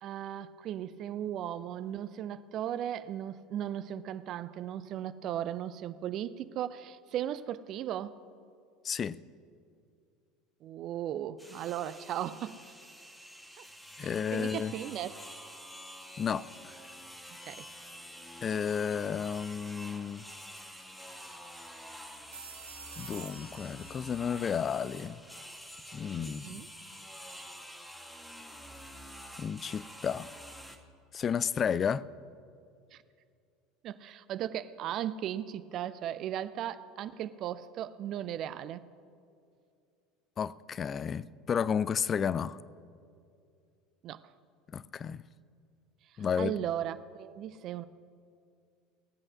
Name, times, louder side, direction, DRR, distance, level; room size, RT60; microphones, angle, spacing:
voice 1, 0.0-8.2 10.6-12.8 13.6-13.7 14.0-15.2 17.5-17.7 26.2-26.7 32.9-33.0 33.8-38.9 44.0-44.2 46.4-47.9, right 11 dB, 45° right, 15 dB, 0.4 m, -37 dB
voice 2, 8.8-9.2 14.0-14.7 16.2-16.8 18.4-20.2 23.0-25.2 25.9-26.6 29.4-30.3 31.1-32.0 40.4-42.6 44.7-45.2 46.2-46.5, left 7 dB, 30° left, 19 dB, 0.3 m, -32 dB
sound 1, 11.4-30.8, equal, 5° left, 1.2 m, -48 dB
sound 2, 19.7-19.9 20.2-20.3 22.1-25.3, right 5 dB, 75° right, 1.5 m, -51 dB
16.5 x 8.6 x 6.2 m, 2.4 s
figure-of-eight pair, 70°, 0 cm